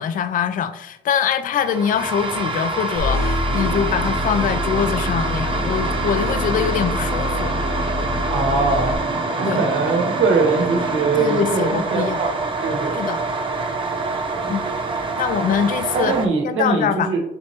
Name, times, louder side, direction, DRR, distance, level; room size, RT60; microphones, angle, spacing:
voice 1, 0.0-7.6 9.4-9.6 11.2-12.2 12.9-13.2 14.5-14.7 14.9-16.2 16.4-17.1, left 8 dB, 45° left, 11 dB, 0.4 m, -23 dB
sound 1, 1.5-16.3, right 3 dB, 25° right, 0.6 m, -26 dB
sound 2, 3.0-9.0, left 1 dB, 75° left, 1.6 m, -26 dB
sound 3, 3.5-11.5, right 2 dB, 50° right, 1.1 m, -31 dB
voice 2, 8.3-9.0 9.4-12.3 12.6-13.0 14.3-14.5 15.9-17.2, right 4 dB, 80° right, 2 dB, 1.1 m, -21 dB
6.0 x 3.1 x 2.8 m, 0.79 s
cardioid pair, 90°, 20 cm